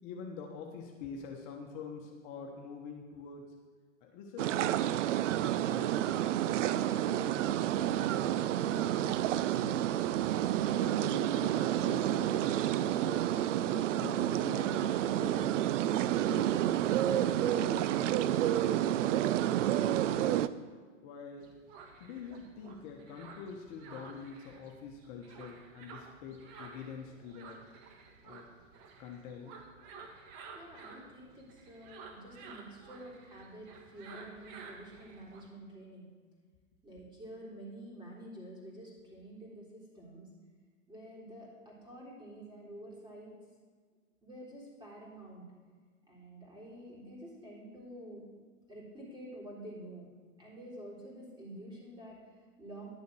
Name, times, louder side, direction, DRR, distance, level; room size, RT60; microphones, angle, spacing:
voice 1, 0.0-3.4 4.0-5.0 5.3-6.3 7.0-9.9 10.7-12.4 12.8-13.3 13.7-15.7 16.1-16.5 17.1-19.3 19.7-20.4 21.0-21.5 22.0-27.6 28.2-28.5 29.0-29.6, left 5 dB, 45° left, 1 dB, 1.3 m, -46 dB
sound 1, 4.4-20.5, right 12 dB, 70° right, 0.5 m, -29 dB
sound 2, 21.4-35.5, right 4 dB, 50° right, 1.6 m, -52 dB
voice 2, 30.5-36.1 36.8-40.3 40.9-43.3 44.2-45.4 46.1-48.2 48.7-50.1 50.4-52.9, right 1 dB, 10° right, -4 dB, 3.7 m, -49 dB
10.5 x 6.8 x 6.3 m, 1.5 s
hypercardioid pair, 110°, 38 cm